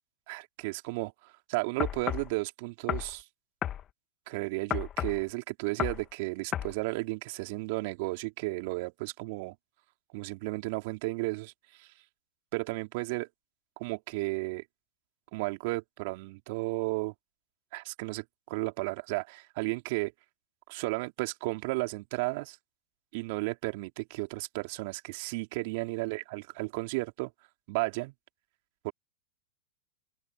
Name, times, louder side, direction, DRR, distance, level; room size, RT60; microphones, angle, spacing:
voice 1, 0.3-3.2 4.3-9.5 10.1-11.9 12.5-13.3 13.8-14.6 15.3-17.1 17.7-20.1 20.7-22.6 23.1-27.3 27.7-28.1 28.8-28.9, right 25 dB, 55° right, 3.3 m, -33 dB
sound 1, 1.8-2.3 2.9-3.1 3.6-3.8 4.7-5.2 5.8-6.0 6.5-6.7, left 10 dB, 30° left, 1.8 m, -32 dB
open air
hypercardioid pair, 100°, 0 cm